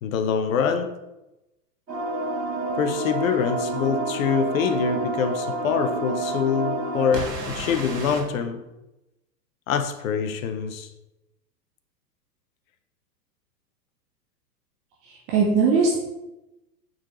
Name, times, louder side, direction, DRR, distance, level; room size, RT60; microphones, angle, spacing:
voice 1, 0.0-0.9 2.8-8.6 9.7-10.9, left 6 dB, 55° left, 9 dB, 0.7 m, -25 dB
sound 1, 1.9-8.2, right 2 dB, 85° right, 1.6 m, -29 dB
voice 2, 15.1-16.0, right 4 dB, 15° right, -3 dB, 0.3 m, -20 dB
8.4 x 3.9 x 3.0 m, 0.97 s
figure-of-eight pair, 100°, 49 cm